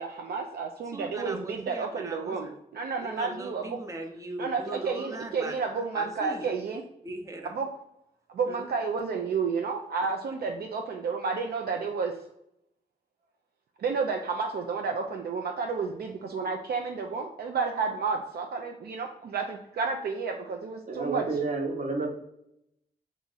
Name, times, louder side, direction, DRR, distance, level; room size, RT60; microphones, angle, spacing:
voice 1, 0.0-3.8 4.4-6.8 7.5-7.7 8.3-12.1 13.8-21.4, right 5 dB, 65° right, 3 dB, 0.4 m, -31 dB
voice 2, 0.9-2.6 3.0-6.5 7.0-7.5 8.5-8.7, right 2 dB, 20° right, 3 dB, 0.6 m, -39 dB
voice 3, 20.9-22.1, right 3 dB, 45° right, 2 dB, 0.9 m, -30 dB
2.8 x 2.5 x 3.8 m, 0.79 s
supercardioid pair, 45°, 17 cm